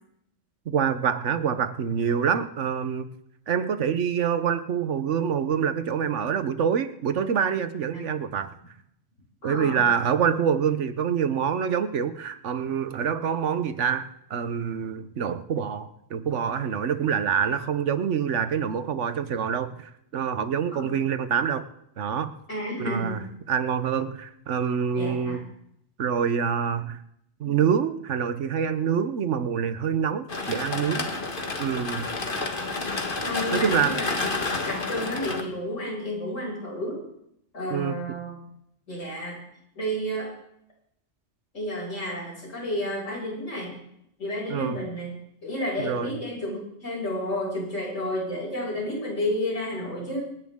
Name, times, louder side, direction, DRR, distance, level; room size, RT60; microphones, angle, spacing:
voice 1, 0.7-3.1 3.5-8.5 9.4-21.6 22.0-22.3 22.8-25.4 26.0-27.0 27.4-31.1 31.6-32.1 33.5-34.0 37.7-38.0 44.5-44.8 45.8-46.1, right 7 dB, 75° right, 11 dB, 1.2 m, -26 dB
voice 2, 9.4-9.9 20.7-20.9 22.5-23.2 24.9-25.4 33.2-34.2 34.7-37.1 37.5-38.4 38.9-39.4 39.7-40.3 41.5-43.7 44.2-45.1 45.4-50.2, left 1 dB, 90° left, -4 dB, 6.8 m, -31 dB
sound 1, 30.3-35.4, left 3 dB, 45° left, 1.6 m, -30 dB
27.0 x 10.5 x 3.7 m, 0.75 s
omnidirectional pair, 1.2 m